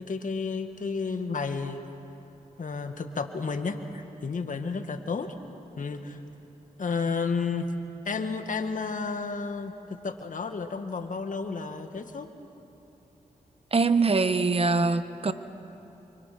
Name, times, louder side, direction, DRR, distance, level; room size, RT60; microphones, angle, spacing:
voice 1, 0.0-1.9 2.6-5.3 5.8-6.2 6.8-7.7 8.1-12.3, left 4 dB, 60° left, 7 dB, 1.7 m, -32 dB
voice 2, 13.7-15.3, right 4 dB, 40° right, 11 dB, 1.1 m, -23 dB
26.5 x 25.0 x 6.0 m, 2.9 s
cardioid pair, 50°, 15 cm